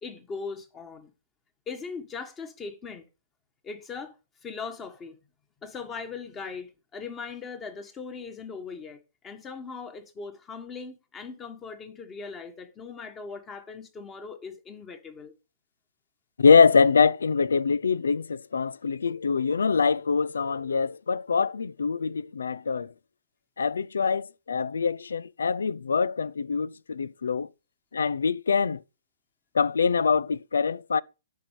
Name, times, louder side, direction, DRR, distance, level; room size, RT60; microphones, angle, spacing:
voice 1, 0.0-1.1 1.7-3.1 3.6-4.2 4.4-5.2 5.6-15.3, left 5 dB, 20° left, 1.7 m, -39 dB
voice 2, 16.4-22.9 23.6-27.5 27.9-28.8 29.5-31.0, left 5 dB, 85° left, 0.5 m, -24 dB
12.0 x 5.5 x 4.9 m
hypercardioid pair, 135°, 0 cm